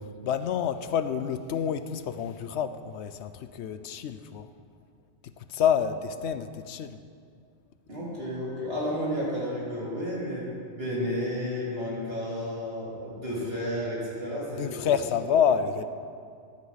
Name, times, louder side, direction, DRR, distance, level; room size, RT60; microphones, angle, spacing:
voice 1, 0.2-4.5 5.5-7.0 14.6-15.8, left 8 dB, 80° left, 11 dB, 0.9 m, -28 dB
voice 2, 7.9-14.9, equal, 60° right, -7 dB, 3.5 m, -32 dB
15.0 x 10.5 x 4.1 m, 2.3 s
omnidirectional pair, 1.2 m